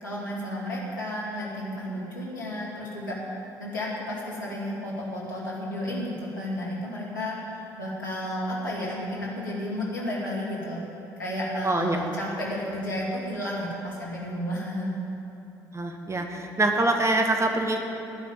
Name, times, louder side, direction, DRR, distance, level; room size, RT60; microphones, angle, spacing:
voice 1, 0.0-10.8 11.2-14.9, left 1 dB, 85° left, -5 dB, 2.6 m, -32 dB
voice 2, 11.6-12.0 15.7-17.8, right 2 dB, 30° right, 3 dB, 1.9 m, -24 dB
18.0 x 6.1 x 9.0 m, 2.9 s
figure-of-eight pair, 50°, 10 cm